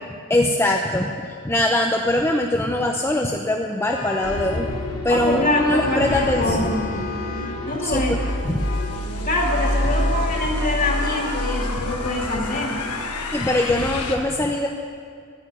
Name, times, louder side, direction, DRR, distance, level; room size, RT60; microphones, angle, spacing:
voice 1, 0.3-1.1 1.4-4.7 5.0-6.7 7.8-8.2 8.4-8.6 13.3-14.7, left 1 dB, 10° left, 1 dB, 0.6 m, -22 dB
Vehicle horn car horn honking, 3.8-4.7 5.5-7.7 8.2-9.0 9.5-10.3 10.9-11.5, left 3 dB, 60° left, 2.6 m, -34 dB
sound 1, 4.2-14.2, left 1 dB, 90° left, 1.3 m, -27 dB
voice 2, 5.1-6.9 7.6-8.2 9.2-12.8, left 1 dB, 40° left, 0 dB, 2.4 m, -24 dB
12.0 x 8.9 x 10.0 m, 2.2 s
head